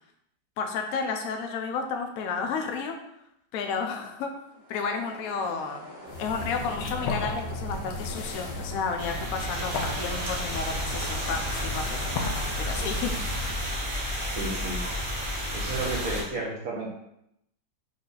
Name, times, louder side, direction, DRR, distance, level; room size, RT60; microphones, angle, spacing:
voice 1, 0.6-3.0 3.5-4.3 4.7-5.9 6.2-12.1 12.6-13.4, left 5 dB, 65° left, 4 dB, 1.0 m, -32 dB
sound 1, 4.4-13.1, equal, 85° right, 2.0 m, -44 dB
sound 2, 6.1-13.8, left 2 dB, 80° left, 1.3 m, -35 dB
sound 3, 9.0-16.2, equal, 35° right, 1.0 m, -31 dB
voice 2, 14.4-14.8 15.5-16.9, right 3 dB, 60° right, -2 dB, 1.1 m, -32 dB
5.0 x 2.7 x 3.9 m, 0.79 s
omnidirectional pair, 1.8 m